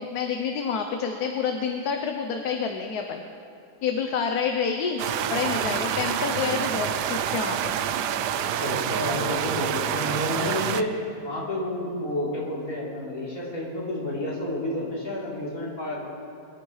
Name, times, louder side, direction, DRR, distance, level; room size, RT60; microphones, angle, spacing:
voice 1, 0.0-3.2 3.8-5.0 5.3-7.7, left 6 dB, 70° left, 4 dB, 1.3 m, -28 dB
sound 1, 5.0-10.8, right 9 dB, 85° right, 1.2 m, -27 dB
voice 2, 8.5-10.9 11.2-16.0, left 1 dB, 50° left, -8 dB, 3.9 m, -30 dB
23.5 x 11.5 x 3.2 m, 2.7 s
omnidirectional pair, 1.7 m